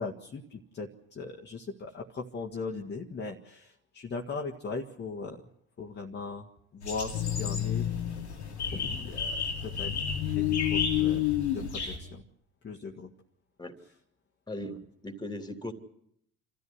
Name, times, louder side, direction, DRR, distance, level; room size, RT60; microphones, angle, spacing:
voice 1, 0.0-5.4 5.8-6.5 6.7-7.9 8.7-9.9 10.3-11.3 11.5-12.3 12.6-13.1 14.6-14.8, left 4 dB, 30° left, -1 dB, 1.7 m, -39 dB
sound 1, 6.8-12.0, left 4 dB, 90° left, 2.4 m, -35 dB
sound 2, 7.1-12.1, left 13 dB, 65° left, 1.4 m, -31 dB
voice 2, 14.5-14.8 15.0-15.7, left 1 dB, 15° left, 8 dB, 2.7 m, -38 dB
26.5 x 14.0 x 9.7 m, 0.74 s
figure-of-eight pair, 60°, 33 cm